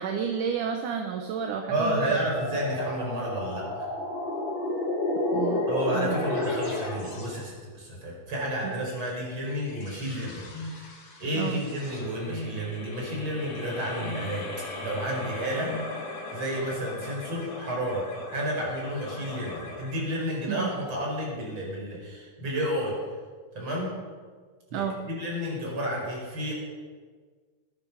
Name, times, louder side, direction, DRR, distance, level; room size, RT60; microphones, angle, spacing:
voice 1, 0.0-2.2 5.3-5.7 5.9-6.2 8.6-8.7 11.4-11.6 20.5-20.7 24.7-25.0, right 7 dB, 70° right, 4 dB, 2.2 m, -31 dB
sound 1, 1.6-7.4, left 2 dB, 60° left, 4.9 m, -31 dB
voice 2, 1.7-3.9 5.7-10.9 11.2-14.5 14.8-15.8 16.3-18.1 18.3-23.0 23.5-23.9 24.7-26.5, equal, 30° right, -2 dB, 5.5 m, -31 dB
sound 2, 8.8-21.5, left 2 dB, 45° left, 3.3 m, -41 dB
sound 3, 10.5-10.8 12.2-12.5 13.9-14.3 15.6-15.9, left 1 dB, 10° left, 3.5 m, -37 dB
20.5 x 10.5 x 5.7 m, 1.5 s
omnidirectional pair, 4.4 m